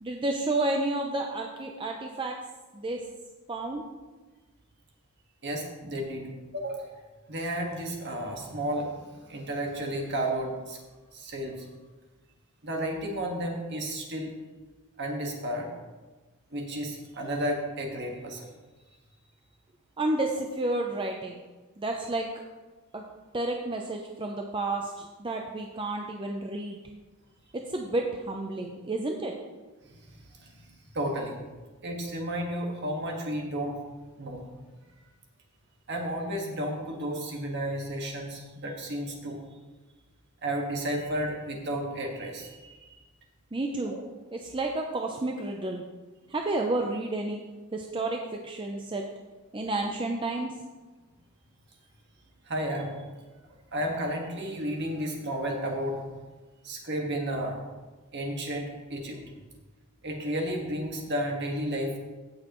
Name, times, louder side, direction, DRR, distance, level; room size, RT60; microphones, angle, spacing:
voice 1, 0.0-2.3 2.7-3.0 3.5-3.8 20.0-21.4 21.8-22.3 22.9-23.0 23.3-26.8 27.5-29.3 43.5-43.9 44.3-45.8 46.3-47.4 47.7-49.0 49.5-50.5, right 2 dB, 25° right, 2 dB, 0.6 m, -31 dB
voice 2, 5.4-7.0 7.3-10.8 11.1-11.6 12.6-14.3 15.0-15.7 16.5-18.5 29.9-30.7 30.9-31.4 31.8-33.8 34.2-34.4 35.9-39.4 40.4-42.9 43.8-44.0 52.4-52.9 53.7-56.0 56.6-57.6 58.1-59.2 60.0-62.0, right 1 dB, 50° right, 1 dB, 1.7 m, -32 dB
16.0 x 6.5 x 3.0 m, 1.3 s
head